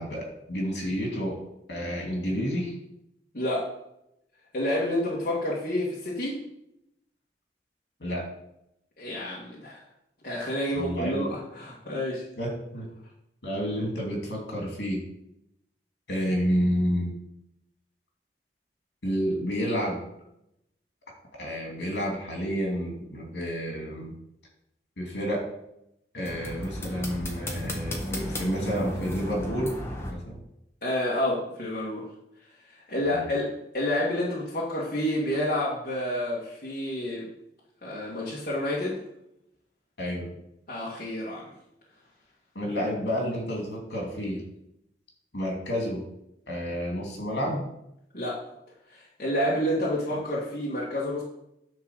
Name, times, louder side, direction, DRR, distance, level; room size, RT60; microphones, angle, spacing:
voice 1, 0.0-1.4 1.7-2.7 8.0-8.2 10.7-11.3 12.4-12.9 13.4-15.0 16.1-17.1 19.0-20.0 21.4-24.1 25.0-25.4 26.1-29.7 30.1-30.4 33.0-33.2 40.0-40.3 42.5-44.4 45.3-46.0 46.5-47.7, equal, 70° left, -1 dB, 2.6 m, -30 dB
voice 2, 3.3-3.7 4.5-6.4 9.0-9.8 10.2-12.2 30.8-32.1 32.7-37.3 37.8-39.0 40.7-41.5 42.8-42.9 48.1-48.4 48.9-51.2, left 1 dB, 50° left, -6 dB, 1.8 m, -29 dB
sound 1, 26.3-30.1, left 1 dB, 15° left, 1.2 m, -34 dB
9.8 x 3.9 x 6.4 m, 0.82 s
head